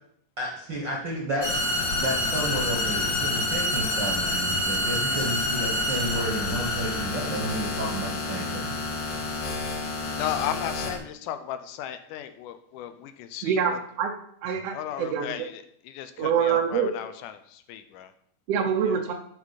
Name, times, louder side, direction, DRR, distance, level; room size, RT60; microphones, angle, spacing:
voice 1, 0.4-1.6 2.0-8.8, right 1 dB, 55° right, -1 dB, 1.3 m, -32 dB
sound 1, 1.4-11.0, left 2 dB, 60° left, 1.2 m, -28 dB
voice 2, 10.2-13.8 14.7-18.1 18.9-19.1, left 11 dB, 80° left, 10 dB, 2.2 m, -35 dB
voice 3, 13.4-14.1 14.4-15.3 16.2-16.9 18.5-19.1, right 7 dB, 80° right, 3 dB, 1.4 m, -25 dB
11.5 x 4.8 x 4.0 m, 0.67 s
omnidirectional pair, 3.6 m